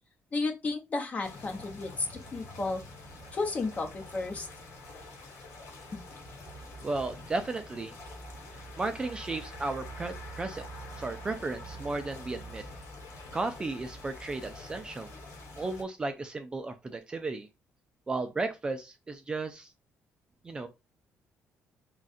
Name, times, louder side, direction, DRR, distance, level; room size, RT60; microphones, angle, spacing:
voice 1, 0.3-2.8 3.3-4.5 5.9-6.0, left 3 dB, 30° left, 0.9 m, -33 dB
sound 1, 1.2-15.8, left 1 dB, 90° left, 1.7 m, -45 dB
voice 2, 6.8-7.9 8.5-10.6 11.0-12.6 13.3-15.1 15.6-17.5 18.1-19.7 20.4-20.7, right 3 dB, 20° right, 0.4 m, -34 dB
3.6 x 2.4 x 4.1 m
cardioid pair, 160°, 5 cm